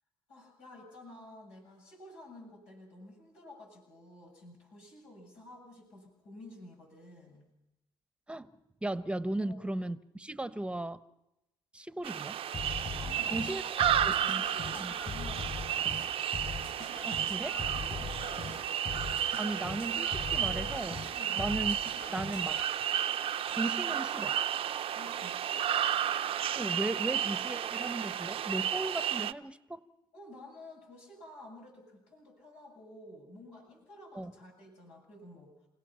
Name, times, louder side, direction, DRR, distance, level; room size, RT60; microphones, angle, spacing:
voice 1, 0.3-7.5 9.4-9.6 13.0-15.7 17.7-18.8 21.1-21.5 24.9-25.6 30.1-35.5, left 1 dB, 85° left, -1 dB, 7.4 m, -51 dB
voice 2, 8.8-11.0 11.7-12.4 13.3-13.6 14.1-14.4 14.8-14.9 17.0-17.6 19.4-21.0 21.3-21.8 22.1-22.6 23.5-24.3 26.5-29.9 34.1-34.3, right 1 dB, 10° right, 13 dB, 1.0 m, -36 dB
sound 1, 12.0-29.3, right 10 dB, 60° right, 0.7 m, -32 dB
sound 2, 12.5-22.6, left 5 dB, 45° left, 6.6 m, -41 dB
28.5 x 17.0 x 5.7 m, 0.91 s
supercardioid pair, 65°, 11 cm